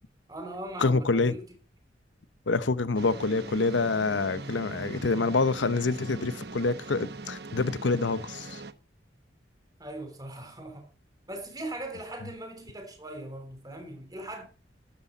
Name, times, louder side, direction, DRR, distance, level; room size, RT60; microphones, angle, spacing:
voice 1, 0.3-1.4 9.8-10.9 11.3-14.4, right 1 dB, 20° right, 3.3 m, -39 dB
voice 2, 0.8-1.3 2.5-8.6, left 3 dB, 85° left, 0.8 m, -26 dB
sound 1, 3.0-8.7, right 3 dB, 60° right, 0.9 m, -41 dB
13.0 x 10.0 x 4.0 m
head